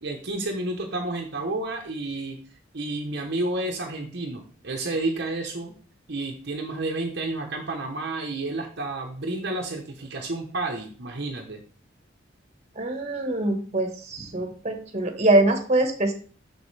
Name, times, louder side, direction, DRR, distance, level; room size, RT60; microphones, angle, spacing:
voice 1, 0.0-2.4 2.7-5.7 6.1-11.6, right 2 dB, 55° right, 1 dB, 1.0 m, -30 dB
voice 2, 12.7-16.1, right 2 dB, 35° right, 5 dB, 1.3 m, -23 dB
7.0 x 6.3 x 3.3 m, 0.42 s
head